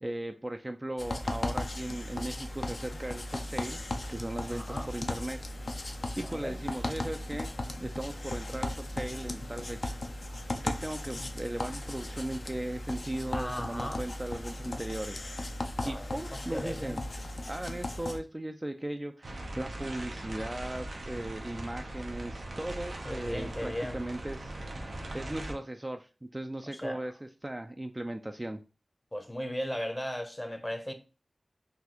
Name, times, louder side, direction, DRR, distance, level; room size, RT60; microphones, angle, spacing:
voice 1, 0.0-3.8 4.1-5.4 6.2-7.5 7.8-10.0 10.6-15.3 15.8-17.0 17.5-24.6 25.1-28.6, right 1 dB, 25° right, 0.3 m, -37 dB
sound 1, 1.0-18.2, left 1 dB, 65° left, 0.5 m, -37 dB
voice 2, 4.5-4.9 6.2-6.5 13.3-14.1 15.8-17.0 23.0-24.0 26.8-27.0 29.1-30.9, equal, 15° left, 0.7 m, -37 dB
sound 2, 19.2-25.5, right 1 dB, 85° right, 0.7 m, -40 dB
4.0 x 2.5 x 2.9 m
cardioid pair, 45°, 0 cm